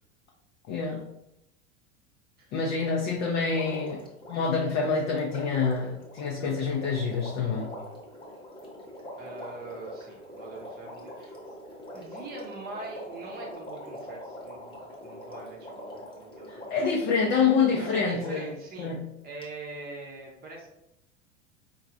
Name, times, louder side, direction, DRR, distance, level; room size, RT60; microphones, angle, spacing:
voice 1, 0.7-1.0 2.5-4.0 4.3-7.7 16.5-18.5 18.8-19.0, left 5 dB, 35° left, 0 dB, 0.4 m, -27 dB
Water, 3.5-18.5 19.4-19.5, equal, 15° left, 0.8 m, -43 dB
voice 2, 9.2-11.4 11.9-16.8 17.7-19.0 19.2-20.7, right 3 dB, 25° right, -2 dB, 0.7 m, -43 dB
4.5 x 2.4 x 2.5 m, 0.85 s
figure-of-eight pair, 80°, 37 cm